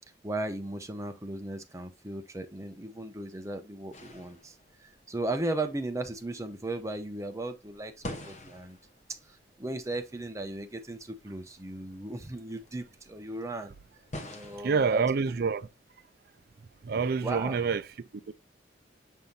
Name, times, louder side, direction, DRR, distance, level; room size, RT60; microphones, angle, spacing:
voice 1, 0.2-8.8 9.1-13.7 14.3-15.4 17.2-17.6, right 2 dB, 15° right, 0.7 m, -36 dB
sound 1, 3.9-15.8, left 1 dB, 40° left, 1.0 m, -48 dB
voice 2, 14.6-15.7 16.8-17.8 18.3-18.4, right 5 dB, 55° right, 0.4 m, -27 dB
6.5 x 5.4 x 2.7 m
head